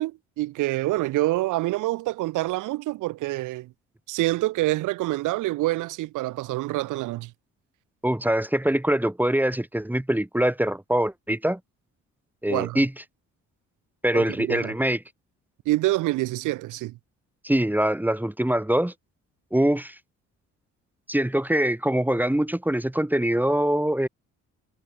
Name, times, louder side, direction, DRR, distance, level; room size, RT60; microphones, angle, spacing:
voice 1, 0.0-3.7 4.1-7.3 12.5-12.8 14.1-14.7 15.7-17.0, right 18 dB, 85° right, 0.7 m, -26 dB
voice 2, 8.0-11.6 12.4-12.9 14.0-15.0 17.4-18.9 19.5-20.0 21.1-24.1, right 1 dB, 5° right, 1.8 m, -23 dB
cardioid pair, 90°, 30 cm